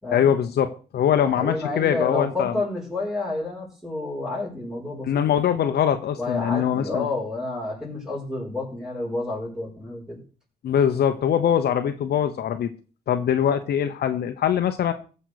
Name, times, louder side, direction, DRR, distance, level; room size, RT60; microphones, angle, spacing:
voice 1, 0.1-2.6 5.0-7.1 10.6-12.7 13.1-14.9, left 9 dB, 75° left, 7 dB, 1.0 m, -22 dB
voice 2, 1.2-5.3 6.2-10.2, left 2 dB, 5° right, -7 dB, 5.8 m, -29 dB
14.5 x 5.5 x 6.5 m, 0.38 s
cardioid pair, 95°, 17 cm